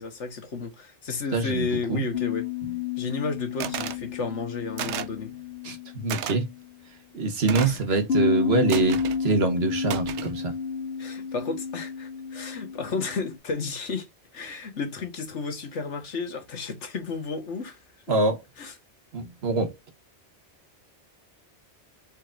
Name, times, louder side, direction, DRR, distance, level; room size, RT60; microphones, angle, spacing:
voice 1, 0.0-2.5 3.0-5.3 7.6-8.0 11.0-14.1 14.3-17.8 18.6-18.7, left 4 dB, 85° left, 1.6 m, -32 dB
voice 2, 1.3-2.0 5.6-6.5 7.1-10.5 18.1-18.4 19.1-19.7, right 3 dB, 60° right, 1.4 m, -25 dB
sound 1, 2.1-6.7 8.1-13.4, left 6 dB, 60° left, 0.9 m, -31 dB
sound 2, 3.6-4.0 4.8-5.2 6.1-6.4 7.5-7.9 8.7-9.2 9.9-10.3, right 10 dB, 80° right, 0.9 m, -32 dB
4.7 x 4.4 x 2.5 m
omnidirectional pair, 1.2 m